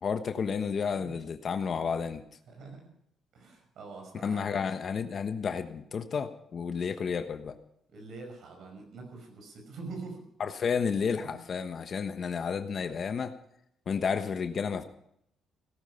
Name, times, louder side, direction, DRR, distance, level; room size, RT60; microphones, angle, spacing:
voice 1, 0.0-2.2 4.2-7.6 10.4-13.3 13.9-14.8, left 6 dB, 50° left, 8 dB, 1.2 m, -31 dB
voice 2, 2.5-2.9 3.3-5.0 7.9-10.3 11.2-11.4, right 3 dB, 70° right, 3 dB, 5.7 m, -45 dB
17.5 x 12.0 x 5.7 m, 0.75 s
cardioid pair, 90°, 0 cm